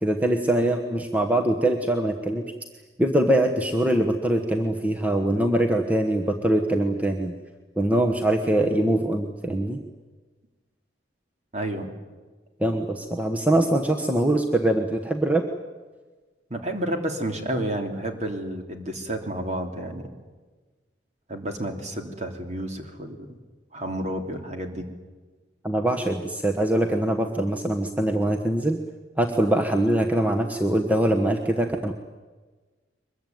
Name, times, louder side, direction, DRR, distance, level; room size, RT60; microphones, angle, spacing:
voice 1, 0.0-2.5 3.0-7.3 7.8-9.8 12.6-15.4 25.6-28.8 29.2-31.9, right 1 dB, 10° right, 2 dB, 1.3 m, -23 dB
voice 2, 11.5-11.9 16.5-20.0 21.3-23.4 23.7-24.9, right 1 dB, 35° right, 4 dB, 3.2 m, -30 dB
23.5 x 22.0 x 9.4 m, 1.3 s
head